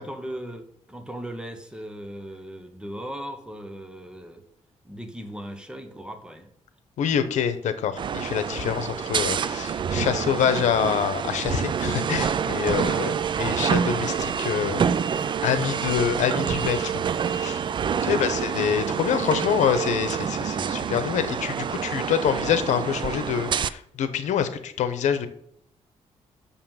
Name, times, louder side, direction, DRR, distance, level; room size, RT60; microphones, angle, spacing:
voice 1, 0.0-4.4 4.8-6.5 12.7-13.1 17.9-18.4, equal, 5° right, 6 dB, 1.1 m, -38 dB
voice 2, 7.0-14.8 15.4-17.6 18.0-25.3, left 8 dB, 85° left, 10 dB, 0.9 m, -26 dB
sound 1, 8.0-23.7, right 7 dB, 40° right, 0.4 m, -27 dB
6.9 x 5.7 x 7.3 m, 0.69 s
cardioid pair, 130°, 12 cm